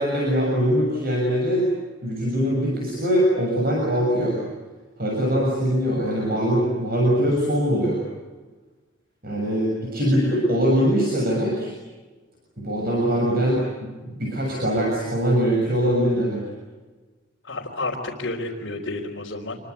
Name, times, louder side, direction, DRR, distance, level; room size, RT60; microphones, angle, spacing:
voice 1, 0.0-1.7 2.0-4.4 5.0-8.0 9.2-11.7 12.6-16.4, equal, 50° right, -1 dB, 6.9 m, -22 dB
voice 2, 17.4-19.6, left 2 dB, 65° left, -4 dB, 3.8 m, -30 dB
27.0 x 23.5 x 8.3 m, 1.3 s
head